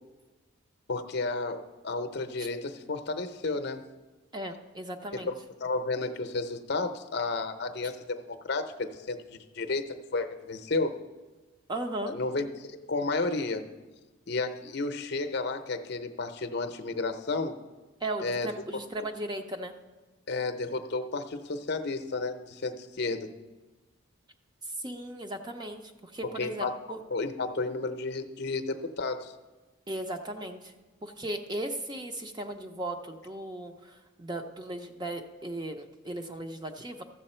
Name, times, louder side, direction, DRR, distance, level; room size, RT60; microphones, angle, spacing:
voice 1, 0.9-3.8 5.1-5.3 5.6-10.9 12.1-13.7 14.3-17.6 18.2-18.5 19.0-19.1 20.3-23.3 26.4-26.7 27.1-29.3, left 3 dB, 50° left, 8 dB, 0.7 m, -32 dB
voice 2, 4.3-5.3 11.7-12.1 18.0-19.7 24.6-27.0 29.9-30.7 31.0-37.0, right 1 dB, 20° right, 5 dB, 0.6 m, -37 dB
13.5 x 7.4 x 4.3 m, 1.2 s
head